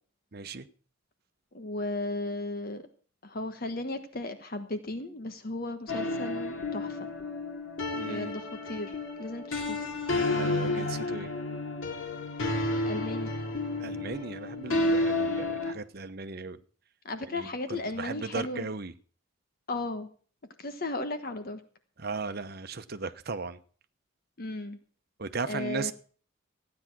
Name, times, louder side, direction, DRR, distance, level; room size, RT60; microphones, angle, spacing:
voice 1, 0.3-0.7 7.9-8.3 10.3-11.3 13.8-16.6 17.2-18.9 22.0-23.6 25.2-25.9, right 4 dB, 55° right, 10 dB, 1.0 m, -37 dB
voice 2, 1.5-2.9 3.2-7.1 8.0-9.9 12.8-13.3 17.0-18.7 19.7-20.1 20.6-21.6 24.4-24.8 25.5-25.9, left 2 dB, 50° left, 8 dB, 1.3 m, -35 dB
sound 1, 5.9-15.7, left 2 dB, 90° left, 2.5 m, -31 dB
15.5 x 9.7 x 6.1 m, 0.43 s
head